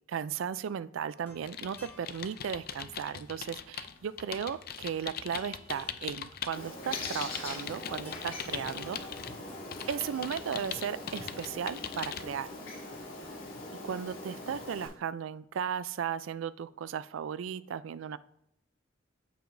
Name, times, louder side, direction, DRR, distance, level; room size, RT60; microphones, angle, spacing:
voice 1, 0.1-9.0 9.9-12.5 13.8-18.2, right 8 dB, 75° right, 16 dB, 0.3 m, -36 dB
sound 1, 1.1-11.1, left 1 dB, 10° left, 1.9 m, -56 dB
sound 2, 1.4-6.6 6.9-9.3 9.7-12.2, left 8 dB, 50° left, 0.5 m, -40 dB
Bird, 6.5-14.9, left 2 dB, 80° left, 3.1 m, -42 dB
14.0 x 4.8 x 2.6 m, 0.76 s
head